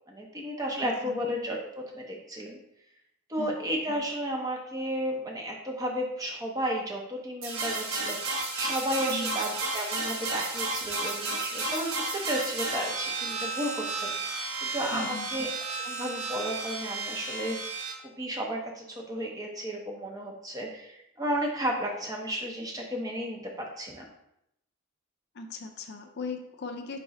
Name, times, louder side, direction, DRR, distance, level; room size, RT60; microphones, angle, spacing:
voice 1, 0.1-1.7 1.9-2.6 3.3-15.5 15.8-17.6 18.0-24.1, equal, 15° right, 0 dB, 0.6 m, -33 dB
voice 2, 0.8-1.2 3.4-3.5 9.1-9.4 14.9-15.3 25.3-27.0, left 3 dB, 50° left, 4 dB, 0.4 m, -38 dB
sound 1, 7.4-17.9, right 3 dB, 80° right, 0.8 m, -33 dB
4.0 x 3.0 x 3.6 m, 0.80 s
head